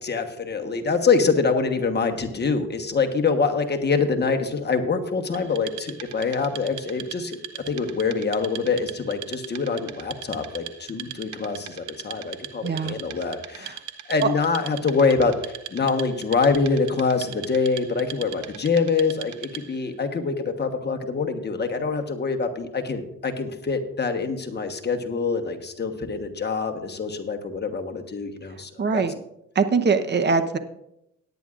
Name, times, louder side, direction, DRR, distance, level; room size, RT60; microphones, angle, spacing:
voice 1, 0.0-7.4 7.7-13.8 14.1-29.0, left 4 dB, 35° left, 5 dB, 1.3 m, -25 dB
Wood, 5.3-19.9, right 11 dB, 80° right, 0.8 m, -40 dB
voice 2, 12.6-13.0 13.6-13.7 14.2-14.3 28.8-29.1 29.5-30.6, right 4 dB, 35° right, 9 dB, 0.9 m, -22 dB
17.5 x 9.9 x 2.5 m, 0.82 s
cardioid pair, 90°, 30 cm